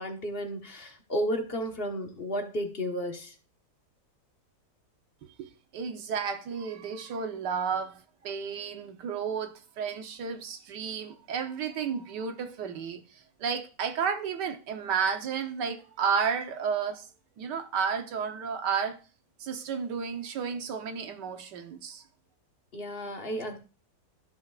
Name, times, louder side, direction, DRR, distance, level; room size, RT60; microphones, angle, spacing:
voice 1, 0.0-3.3 22.7-23.6, equal, 35° left, 1.3 m, -33 dB
voice 2, 5.2-17.1 17.4-19.0 19.4-22.0, right 6 dB, 75° right, 1.6 m, -32 dB
14.0 x 6.2 x 2.4 m
omnidirectional pair, 1.9 m